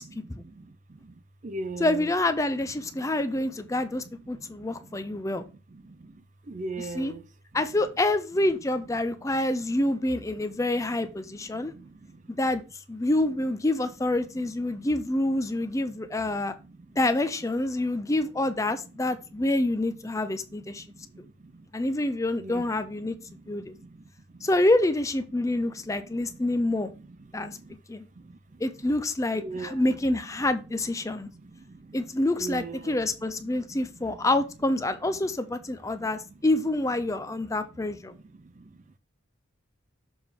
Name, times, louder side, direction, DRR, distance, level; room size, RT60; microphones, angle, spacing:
voice 1, 0.0-2.1 2.9-7.3 9.4-9.6 10.2-11.0 11.2-12.6 14.7-14.9 15.5-16.9 17.8-18.1 18.7-19.5 20.3-21.7 22.4-24.5 25.5-27.8 28.2-28.6 29.3-30.0 30.4-30.5 31.0-33.1 33.4-34.3 35.5-35.6 36.0-36.3 37.4-37.5 37.8-38.9, right 3 dB, 40° right, 0.5 m, -44 dB
voice 2, 1.8-5.4 6.9-7.1 7.5-11.7 12.3-12.6 12.9-16.5 17.0-20.8 21.7-23.2 23.5-23.7 24.4-26.9 27.3-27.6 27.9-28.1 28.6-31.3 31.9-38.1, left 2 dB, 15° left, 0.5 m, -27 dB
6.9 x 3.7 x 4.3 m
head